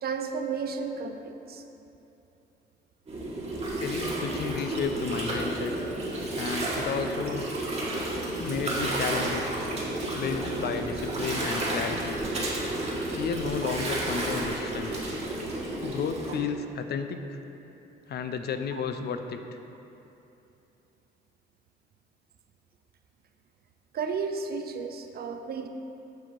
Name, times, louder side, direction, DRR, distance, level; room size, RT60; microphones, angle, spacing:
voice 1, 0.0-1.6 8.9-9.0 13.6-13.7 18.7-18.8 23.9-25.7, right 5 dB, 50° right, 6 dB, 0.5 m, -33 dB
Gurgling, 3.1-16.3, right 1 dB, 35° right, 1.5 m, -31 dB
voice 2, 3.8-5.7 6.4-7.5 8.4-9.7 10.2-12.2 13.1-15.0 15.8-17.4 18.1-19.4, left 6 dB, 55° left, 7 dB, 0.4 m, -32 dB
7.5 x 2.8 x 6.0 m, 2.9 s
cardioid pair, 90°, 20 cm